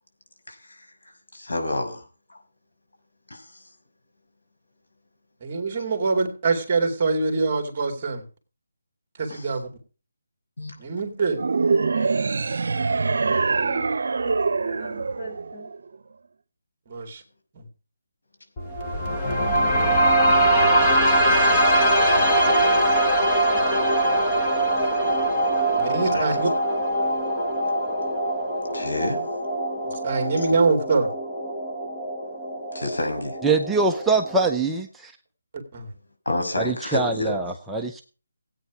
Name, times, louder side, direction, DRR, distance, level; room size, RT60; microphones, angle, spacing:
voice 1, 0.5-0.9 1.3-2.0 2.3-2.4 3.3-3.6 9.3-9.5 10.6-10.7 26.1-26.3 28.6-29.2 32.7-33.4 36.2-37.4, left 2 dB, 85° left, 6.2 m, -29 dB
voice 2, 5.4-8.2 9.2-9.7 10.8-11.4 16.9-17.2 17.5-17.6 25.8-26.5 30.0-31.1 35.7-35.9, right 4 dB, 25° right, 2.4 m, -24 dB
sound 1, 11.4-15.9, right 4 dB, 55° right, 1.0 m, -24 dB
voice 3, 11.9-12.5 12.9-13.9 14.2-15.7, equal, 45° left, 6.0 m, -42 dB
sound 2, 18.6-34.6, right 1 dB, 15° left, 1.5 m, -22 dB
voice 4, 33.4-35.1 36.6-38.0, right 3 dB, 5° right, 0.6 m, -23 dB
17.0 x 9.1 x 4.8 m
hypercardioid pair, 175°, 0 cm